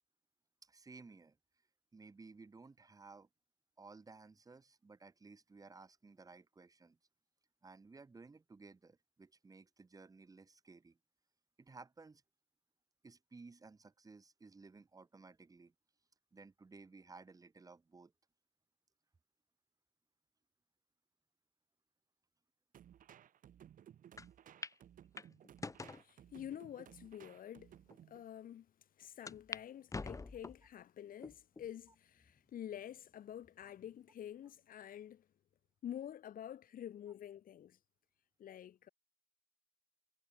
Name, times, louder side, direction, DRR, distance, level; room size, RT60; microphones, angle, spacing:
voice 1, 0.6-1.4 1.9-3.3 3.8-7.0 7.6-11.0 11.6-12.2 13.0-15.7 16.3-18.1, right 4 dB, 20° right, 2.7 m, -57 dB
sound 1, 22.7-28.2, right 10 dB, 55° right, 2.3 m, -59 dB
sound 2, 24.2-24.3 24.6-24.8 25.2-26.0 26.7-26.8 27.5-27.6 27.9-28.0 29.3-29.6 29.9-30.7 31.2-31.7 32.2-32.3 33.4-33.9, left 3 dB, 20° left, 2.1 m, -46 dB
voice 2, 26.0-27.7 28.1-28.7 29.0-35.3 35.8-37.8 38.4-38.9, left 10 dB, 55° left, 5.8 m, -48 dB
cardioid pair, 110°, 17 cm